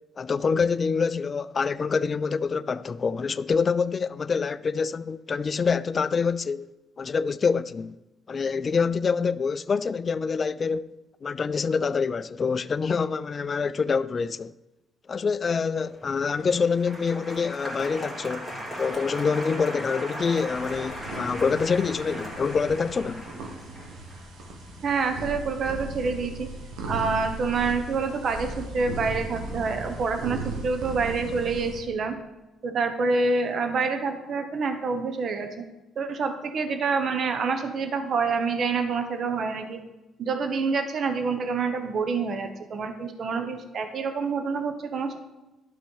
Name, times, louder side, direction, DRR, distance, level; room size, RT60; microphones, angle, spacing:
voice 1, 0.2-7.9 8.3-10.9 11.2-14.5 15.1-18.5 18.8-23.2, left 5 dB, 40° left, 0.3 m, -26 dB
Applause, 15.9-26.3 26.5-27.1, equal, ahead, 2.6 m, -38 dB
sound 1, 20.5-31.8, right 2 dB, 85° right, 1.5 m, -37 dB
voice 2, 24.8-26.5 26.9-32.2 32.6-35.6 36.0-39.8 40.2-45.2, right 4 dB, 55° right, 1.0 m, -27 dB
12.0 x 4.1 x 5.6 m
cardioid pair, 90°, 0 cm